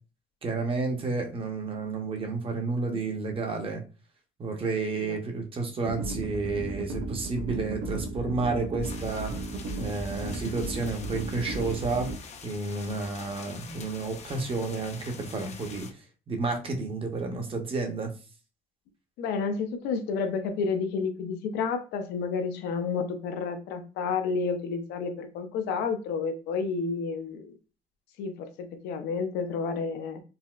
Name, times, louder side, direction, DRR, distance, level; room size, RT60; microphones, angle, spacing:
voice 1, 0.4-3.8 4.4-9.3 9.8-12.1 12.4-15.9 16.3-18.1, right 3 dB, 35° right, 3 dB, 0.7 m, -31 dB
sound 1, 5.8-12.2, right 2 dB, 80° right, 0.5 m, -35 dB
sound 2, 8.8-15.9, left 5 dB, 40° left, 0.5 m, -45 dB
voice 2, 19.2-27.5 28.2-30.2, left 5 dB, 90° left, 7 dB, 0.6 m, -30 dB
4.0 x 2.0 x 2.3 m, 0.34 s
cardioid pair, 110°, 17 cm